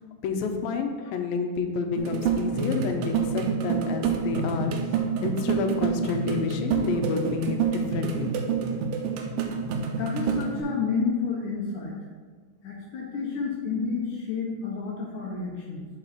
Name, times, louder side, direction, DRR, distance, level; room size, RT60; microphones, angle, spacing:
voice 1, 0.2-4.7 5.2-8.3, left 5 dB, 90° left, 5 dB, 2.4 m, -29 dB
sound 1, 2.0-10.6, right 6 dB, 85° right, 2.4 m, -28 dB
voice 2, 10.0-12.0 12.6-15.9, left 5 dB, 65° left, -3 dB, 2.3 m, -30 dB
7.1 x 4.8 x 4.1 m, 1.5 s
omnidirectional pair, 4.0 m